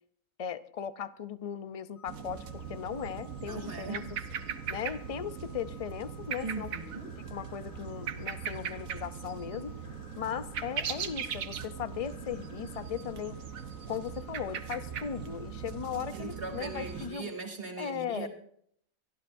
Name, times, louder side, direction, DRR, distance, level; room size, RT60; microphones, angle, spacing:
voice 1, 0.4-4.0 4.7-6.7 7.3-9.7 10.2-13.4 13.9-17.3 17.8-18.3, left 8 dB, 60° left, 14 dB, 0.3 m, -37 dB
sound 1, 2.0-17.2, left 6 dB, 85° left, 1.5 m, -57 dB
sound 2, 2.1-17.1, right 7 dB, 85° right, 1.4 m, -40 dB
voice 2, 3.4-4.1 4.5-4.6 6.4-7.2 16.1-18.3, right 3 dB, 40° right, 2 dB, 2.9 m, -40 dB
24.0 x 13.5 x 2.6 m, 0.66 s
omnidirectional pair, 1.4 m